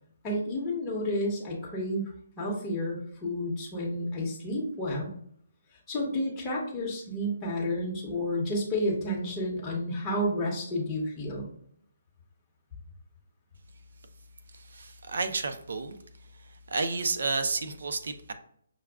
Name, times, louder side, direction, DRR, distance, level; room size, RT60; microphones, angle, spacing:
voice 1, 0.2-2.1 2.4-5.2 5.9-11.5, left 1 dB, 15° left, -4 dB, 1.0 m, -31 dB
voice 2, 14.5-16.0 16.3-18.3, right 3 dB, 65° right, 9 dB, 0.5 m, -31 dB
5.9 x 2.3 x 2.3 m, 0.64 s
hypercardioid pair, 165°, 0 cm